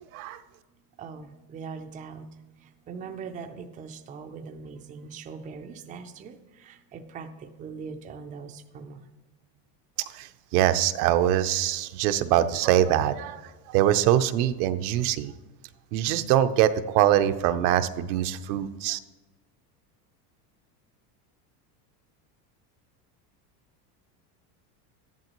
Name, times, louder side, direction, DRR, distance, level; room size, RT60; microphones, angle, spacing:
voice 1, 1.0-2.3 2.6-9.0, right 5 dB, 20° right, 5 dB, 0.4 m, -41 dB
voice 2, 10.1-13.4 13.7-15.3 15.9-19.0, right 12 dB, 75° right, 9 dB, 0.8 m, -23 dB
13.0 x 11.0 x 3.0 m, 1.2 s
supercardioid pair, 145°, 46 cm